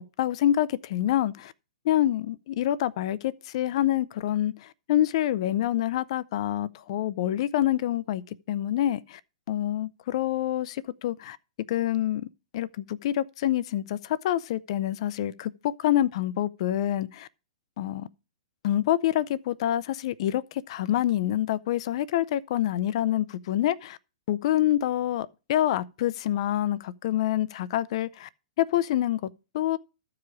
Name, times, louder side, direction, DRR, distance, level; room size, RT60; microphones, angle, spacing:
voice 1, 0.0-1.5 1.8-8.2 8.5-9.2 9.5-11.4 11.7-17.3 17.8-18.1 18.6-24.0 24.3-28.3 28.6-29.8, left 12 dB, 50° left, 0.6 m, -27 dB
13.5 x 4.9 x 4.9 m
figure-of-eight pair, 110°, 4 cm